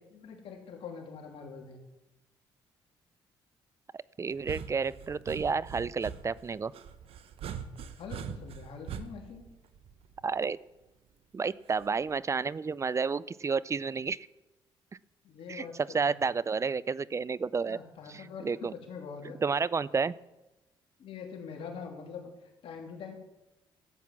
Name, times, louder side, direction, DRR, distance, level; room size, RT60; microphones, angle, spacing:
voice 1, 0.1-1.8 8.0-9.5 15.2-15.8 16.0-16.1 17.6-19.4 19.9-20.0 21.0-23.1, left 6 dB, 70° left, 2 dB, 3.0 m, -44 dB
voice 2, 3.9-6.7 10.2-10.6 11.3-14.2 15.5-15.7 15.9-17.8 18.1-18.7 19.4-20.2, right 5 dB, 30° right, 20 dB, 0.5 m, -31 dB
sound 1, 4.3-10.4 11.8-12.2, right 8 dB, 75° right, 1.0 m, -42 dB
13.0 x 8.0 x 7.3 m, 0.98 s
cardioid pair, 75°, 10 cm